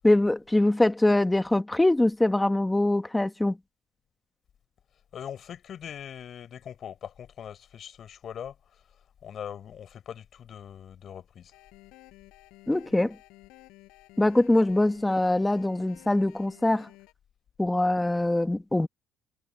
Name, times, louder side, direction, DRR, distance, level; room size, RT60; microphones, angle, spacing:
voice 1, 0.0-3.6 12.7-13.2 14.2-16.9 17.6-18.9, left 1 dB, 10° left, 1.2 m, -23 dB
voice 2, 5.1-8.8 9.2-11.5, left 9 dB, 50° left, 4.5 m, -41 dB
sound 1, 11.5-17.1, left 21 dB, 90° left, 6.4 m, -53 dB
cardioid pair, 105°, 0 cm